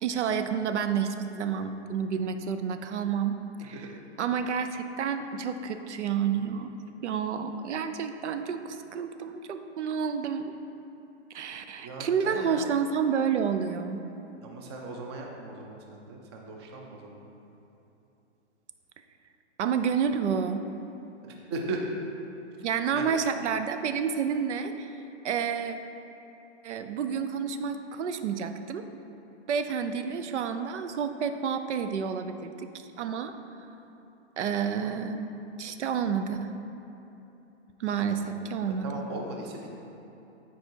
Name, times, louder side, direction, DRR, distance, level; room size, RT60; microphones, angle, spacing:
voice 1, 0.0-3.9 4.2-6.7 7.0-10.5 11.3-14.0 19.6-20.6 22.6-24.9 25.2-25.8 26.6-28.8 29.5-32.7 33.0-33.3 34.4-35.3 35.6-36.5 37.8-39.0, right 7 dB, 75° right, 8 dB, 0.6 m, -29 dB
voice 2, 11.8-12.8 14.4-17.2 21.5-21.8 22.9-23.1 34.8-35.0 38.0-39.7, right 3 dB, 25° right, 1 dB, 0.6 m, -38 dB
9.5 x 4.7 x 4.5 m, 3.0 s
hypercardioid pair, 165°, 35 cm